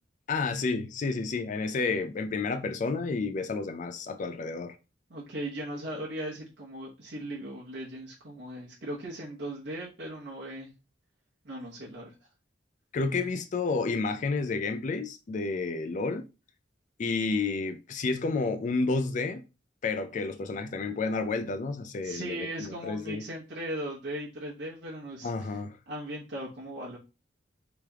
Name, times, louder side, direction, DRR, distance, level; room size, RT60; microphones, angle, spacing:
voice 1, 0.3-4.8 12.9-16.3 17.0-19.4 19.8-23.2 25.2-25.8, left 4 dB, 45° left, 0.4 m, -30 dB
voice 2, 5.1-10.7 11.4-12.1 22.0-25.5 25.9-27.0, right 1 dB, 60° right, 1.1 m, -38 dB
3.3 x 3.0 x 3.5 m
head